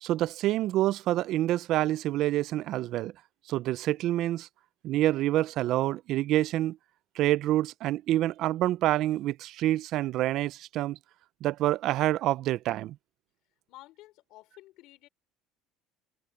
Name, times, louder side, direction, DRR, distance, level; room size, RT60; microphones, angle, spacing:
voice 1, 0.0-3.1 3.5-4.5 4.8-6.8 7.2-11.0 11.4-13.0, right 14 dB, 55° right, 0.4 m, -27 dB
voice 2, 13.7-15.1, left 17 dB, 65° left, 4.0 m, -52 dB
cardioid pair, 125°, 0 cm